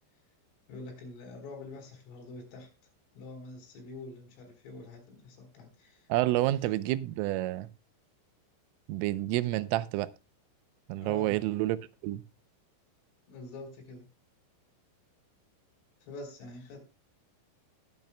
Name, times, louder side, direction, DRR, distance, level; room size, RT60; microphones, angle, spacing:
voice 1, 0.7-2.7 3.1-6.1 6.4-6.6 11.0-11.4 13.3-14.1 16.0-16.9, left 3 dB, 75° left, 6.1 m, -46 dB
voice 2, 6.1-7.7 8.9-10.1 10.9-11.8 12.0-12.2, right 16 dB, 85° right, 3.2 m, -29 dB
19.5 x 8.4 x 2.2 m
omnidirectional pair, 5.8 m